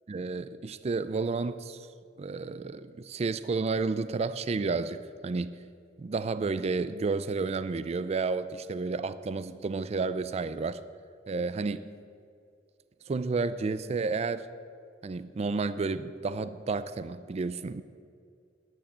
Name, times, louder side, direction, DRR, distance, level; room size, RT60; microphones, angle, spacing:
voice 1, 0.1-1.9 2.2-5.6 6.0-10.8 11.3-11.9 13.1-14.5 15.0-17.8, right 4 dB, 35° right, 0.4 m, -31 dB
13.0 x 6.4 x 8.6 m
head